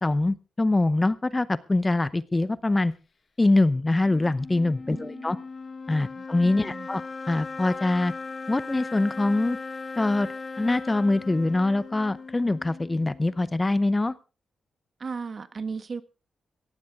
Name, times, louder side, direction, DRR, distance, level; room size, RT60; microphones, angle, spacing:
voice 1, 0.0-2.9 3.4-5.4 5.9-7.0 7.3-8.1 8.5-9.6 10.0-10.3 10.6-14.1, left 2 dB, 20° left, 17 dB, 0.7 m, -24 dB
sound 1, 4.0-13.4, left 4 dB, 40° left, 1.0 m, -38 dB
voice 2, 4.9-5.5 6.1-6.2 6.6-6.9 15.0-16.0, right 5 dB, 45° right, 13 dB, 1.3 m, -36 dB
17.5 x 14.5 x 3.6 m, 0.32 s
cardioid pair, 90°, 0 cm